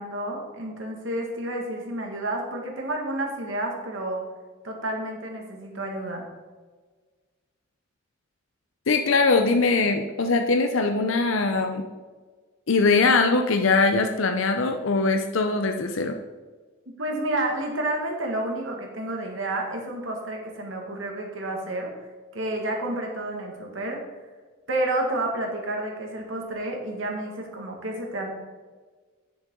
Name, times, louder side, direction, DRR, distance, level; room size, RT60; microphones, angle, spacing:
voice 1, 0.0-4.2 4.6-6.3 17.0-21.9 22.3-24.0 24.7-28.3, right 1 dB, 70° right, 1 dB, 1.9 m, -30 dB
voice 2, 8.9-11.8 12.7-16.2, left 3 dB, 75° left, 5 dB, 0.7 m, -21 dB
9.9 x 7.1 x 3.8 m, 1.4 s
head